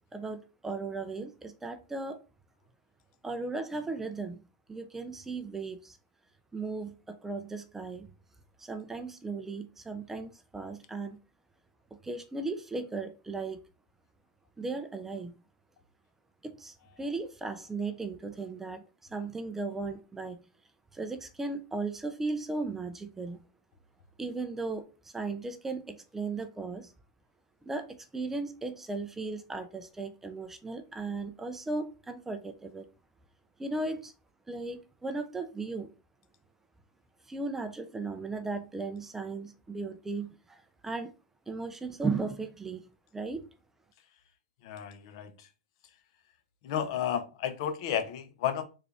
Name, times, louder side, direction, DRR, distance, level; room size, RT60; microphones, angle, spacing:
voice 1, 0.1-2.2 3.2-4.4 4.7-6.0 6.5-8.1 8.6-11.2 11.9-13.6 14.6-15.3 16.4-20.4 20.9-23.4 24.2-26.9 27.6-32.8 33.6-34.1 34.5-35.9 37.3-41.1 41.5-43.4, right 3 dB, 10° right, 0.4 m, -36 dB
voice 2, 44.6-45.5 46.6-48.6, left 9 dB, 55° left, 0.6 m, -32 dB
3.6 x 2.4 x 3.3 m
hypercardioid pair, 130°, 3 cm